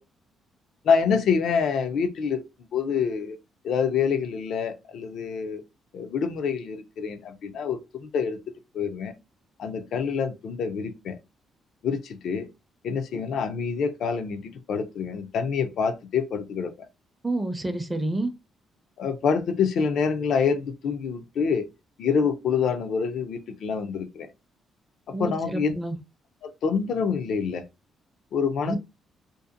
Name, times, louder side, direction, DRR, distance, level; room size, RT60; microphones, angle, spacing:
voice 1, 0.8-3.4 3.6-5.6 5.9-8.4 8.7-9.1 9.6-11.2 11.8-12.5 12.8-16.9 19.0-21.7 22.0-24.3 25.1-25.7 26.4-27.7 28.3-28.8, left 6 dB, 70° left, 0.4 m, -26 dB
voice 2, 17.2-18.3 25.1-26.0 28.6-28.8, right 2 dB, 15° right, 0.4 m, -28 dB
2.6 x 2.4 x 2.5 m
cardioid pair, 90°, 0 cm